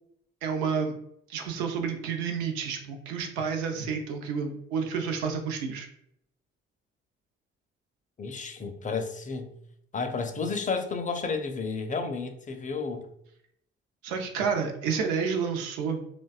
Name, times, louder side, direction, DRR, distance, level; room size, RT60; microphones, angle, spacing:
voice 1, 0.4-1.0 1.3-5.9 14.0-16.0, right 6 dB, 75° right, 4 dB, 0.5 m, -30 dB
voice 2, 8.2-9.5 9.9-13.1, left 4 dB, 25° left, 6 dB, 0.4 m, -32 dB
2.5 x 2.2 x 2.3 m, 0.74 s
hypercardioid pair, 45°, 31 cm